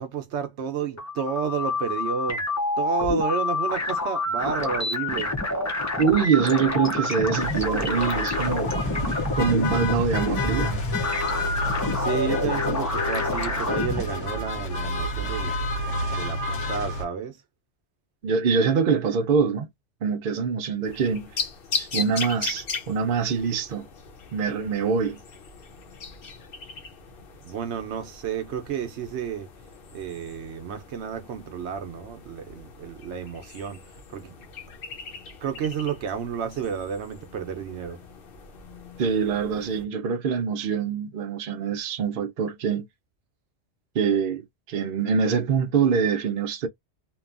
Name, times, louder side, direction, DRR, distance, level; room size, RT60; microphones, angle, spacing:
voice 1, 0.0-2.4 2.8-5.3 11.9-15.6 16.1-17.4 27.4-29.5 29.9-34.5 35.4-38.0, right 7 dB, 80° right, 0.9 m, -31 dB
sound 1, 0.8-14.0, left 3 dB, 20° left, 0.5 m, -28 dB
voice 2, 6.0-8.7 9.4-10.8 18.2-19.7 20.0-21.3 21.8-23.9 24.3-25.2 39.0-42.9 43.9-46.7, right 6 dB, 55° right, 0.8 m, -24 dB
sound 2, 7.4-17.0, left 1 dB, 85° left, 1.2 m, -30 dB
sound 3, 20.8-39.8, left 5 dB, 60° left, 0.8 m, -39 dB
2.8 x 2.3 x 2.5 m
omnidirectional pair, 1.1 m